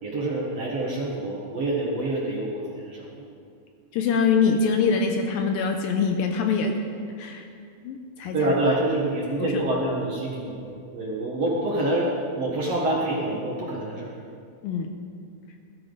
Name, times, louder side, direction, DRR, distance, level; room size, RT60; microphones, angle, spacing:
voice 1, 0.0-3.3 8.3-14.1, right 1 dB, 50° right, -4 dB, 2.2 m, -27 dB
voice 2, 3.9-6.8 7.2-7.5 7.8-8.5 9.4-9.5 14.6-15.0, left 5 dB, 75° left, 4 dB, 2.3 m, -24 dB
18.0 x 13.0 x 4.0 m, 2.3 s
omnidirectional pair, 4.5 m